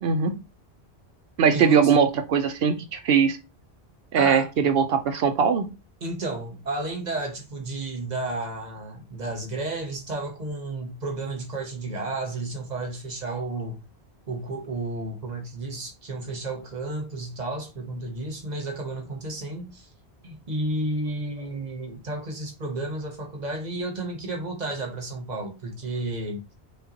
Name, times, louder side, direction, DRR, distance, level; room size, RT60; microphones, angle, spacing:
voice 1, 0.0-0.3 1.4-3.4 4.1-5.7, right 6 dB, 70° right, 0.8 m, -21 dB
voice 2, 1.5-1.9 4.1-4.5 6.0-13.8 14.3-19.9 20.2-26.4, right 2 dB, 45° right, 1.0 m, -32 dB
5.2 x 2.4 x 2.7 m
omnidirectional pair, 1.1 m